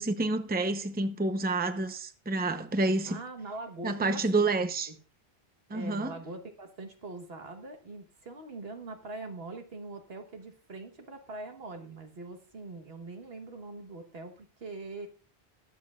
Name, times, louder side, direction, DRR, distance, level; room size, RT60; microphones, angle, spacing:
voice 1, 0.0-3.2 3.8-4.9 5.7-6.1, right 2 dB, 10° right, 0.7 m, -29 dB
voice 2, 3.1-4.9 5.7-15.1, right 2 dB, 70° right, 1.7 m, -43 dB
21.5 x 7.7 x 2.4 m
omnidirectional pair, 1.0 m